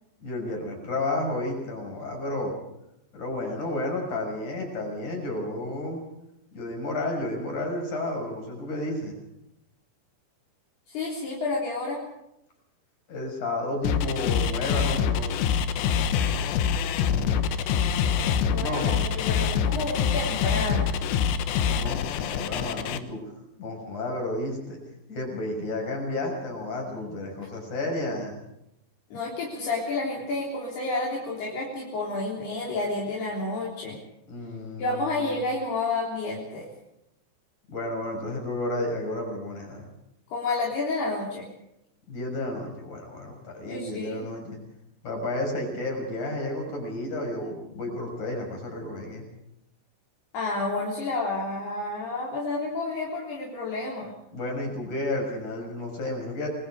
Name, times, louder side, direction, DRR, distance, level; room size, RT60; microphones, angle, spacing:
voice 1, 0.2-2.6 3.1-6.0 6.5-9.2 13.1-15.3 18.5-18.9 21.7-23.2 23.6-24.8 25.1-28.4 34.3-35.4 37.7-39.9 42.1-44.6 45.0-49.2 54.3-56.5, left 1 dB, 45° left, 2 dB, 7.6 m, -32 dB
voice 2, 10.9-12.0 18.5-20.9 29.1-34.0 34.8-36.7 40.3-41.5 43.7-44.3 50.3-54.1, left 3 dB, 65° left, -4 dB, 5.5 m, -30 dB
sound 1, 13.8-23.0, left 7 dB, 80° left, 3.3 m, -25 dB
29.0 x 20.5 x 5.0 m, 0.83 s
omnidirectional pair, 5.1 m